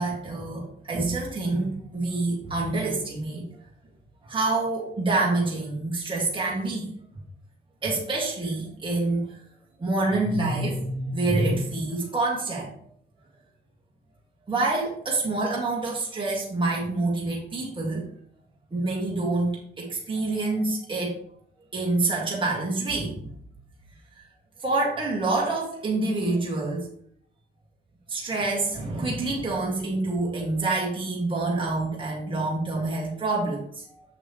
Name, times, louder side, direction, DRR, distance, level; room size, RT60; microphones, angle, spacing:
voice 1, 0.0-3.4 4.2-6.9 7.8-9.3 9.8-12.7 14.5-18.0 18.7-21.2 21.7-23.3 24.6-26.9 28.1-34.0, right 2 dB, 25° right, -4 dB, 2.3 m, -27 dB
6.9 x 6.0 x 3.3 m, 0.64 s
cardioid pair, 90°, 20 cm